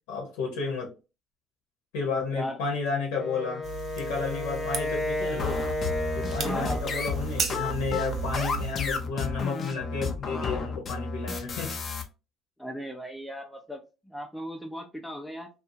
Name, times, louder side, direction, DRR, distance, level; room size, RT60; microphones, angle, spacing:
voice 1, 0.1-0.9 1.9-3.6 3.9-5.6 6.1-11.7, left 4 dB, 85° left, 0 dB, 0.9 m, -32 dB
Wind instrument woodwind instrument, 3.1-7.4, left 2 dB, 25° left, 1.1 m, -33 dB
sound 1, 3.6-8.7, right 9 dB, 55° right, 0.5 m, -35 dB
sound 2, 5.4-12.0, left 4 dB, 50° left, 0.5 m, -32 dB
voice 2, 6.4-6.9 12.6-15.5, equal, 5° left, 1 dB, 0.5 m, -37 dB
2.7 x 2.3 x 2.6 m, 0.30 s
hypercardioid pair, 70°, 0 cm